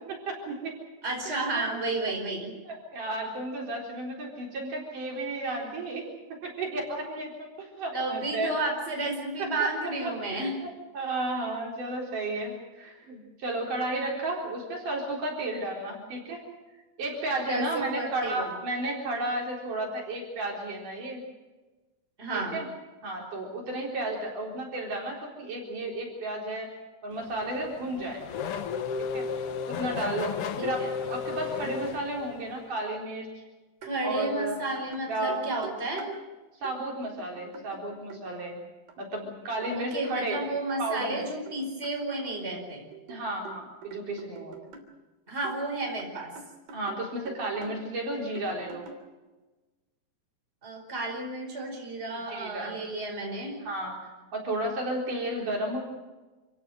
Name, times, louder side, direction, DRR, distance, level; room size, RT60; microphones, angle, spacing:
voice 1, 0.1-0.8 1.3-1.4 2.7-6.1 6.4-8.5 9.4-16.4 17.0-21.2 22.3-22.7 23.0-26.7 27.0-28.2 29.1-29.3 29.7-30.3 30.6-33.3 34.0-34.6 34.9-35.4 36.6-38.6 39.0-40.4 40.8-41.3 43.1-44.5 46.7-48.9 52.3-52.8 53.7-54.0 54.3-55.8, right 2 dB, 60° right, -1 dB, 5.5 m, -33 dB
voice 2, 1.0-2.6 7.9-10.6 17.5-18.5 22.2-22.6 30.6-30.9 33.8-36.1 39.7-42.8 45.3-46.3 50.6-53.6, right 2 dB, 15° right, 1 dB, 5.1 m, -32 dB
Race car auto racing / Accelerating revving vroom, 27.1-32.7, left 6 dB, 85° left, 1.2 m, -34 dB
sound 1, 33.8-34.0 34.2-36.2 36.6-36.8 37.0-38.2 38.9-39.0 39.6-39.7 40.2-41.6 41.8-44.9 45.4-47.0 47.3-47.8 48.4-49.1, right 6 dB, 85° right, 5.1 m, -46 dB
27.5 x 16.5 x 7.7 m, 1.2 s
omnidirectional pair, 4.2 m